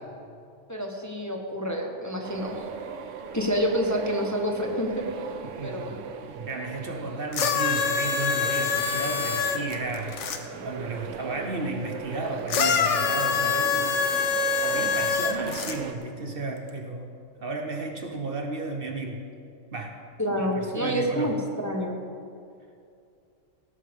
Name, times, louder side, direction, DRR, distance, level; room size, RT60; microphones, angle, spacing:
voice 1, 0.7-2.7 3.3-5.1 5.6-6.0 10.5-10.7 20.2-22.0, equal, 15° left, 1 dB, 1.0 m, -28 dB
sound 1, 2.2-15.9, right 6 dB, 75° right, 1.1 m, -38 dB
voice 2, 5.4-6.0 6.3-10.2 10.6-17.1 17.4-19.2 19.7-20.0 20.3-21.3, right 3 dB, 50° right, 3 dB, 1.1 m, -34 dB
sound 2, 7.3-10.4 12.5-15.8 16.7-16.8, left 6 dB, 70° left, 1.1 m, -25 dB
16.5 x 13.0 x 3.6 m, 2.5 s
omnidirectional pair, 1.3 m